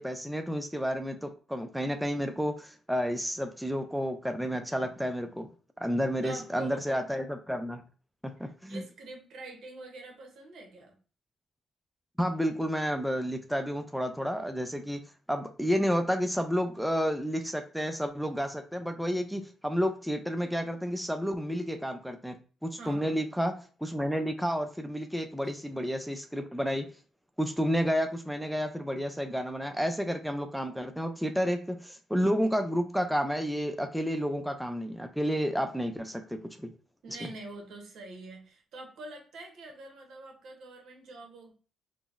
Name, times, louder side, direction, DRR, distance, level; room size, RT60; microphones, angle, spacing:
voice 1, 0.0-5.5 5.8-7.8 8.2-8.8 12.2-15.0 15.3-22.4 22.6-23.5 23.8-26.9 27.4-36.7 37.2-37.3, equal, ahead, 5 dB, 0.3 m, -31 dB
voice 2, 6.2-7.0 8.4-10.9 22.8-23.3 37.0-41.5, right 2 dB, 70° right, 1 dB, 0.8 m, -45 dB
3.8 x 2.0 x 2.3 m, 0.39 s
cardioid pair, 90°, 0 cm